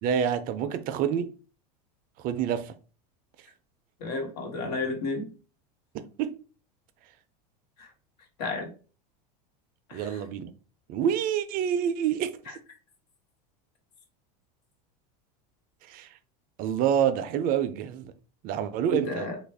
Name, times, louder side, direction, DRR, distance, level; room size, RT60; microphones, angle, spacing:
voice 1, 0.0-1.3 2.2-2.7 5.9-6.3 9.9-10.5 10.9-12.6 15.9-16.1 16.6-18.1 18.4-19.3, right 8 dB, 45° right, 0.4 m, -27 dB
voice 2, 4.0-5.3 7.8-7.9 8.4-8.7 9.9-10.2 12.5-12.6 18.9-19.4, left 3 dB, 75° left, 1.3 m, -32 dB
3.2 x 2.4 x 3.4 m
supercardioid pair, 115°, 21 cm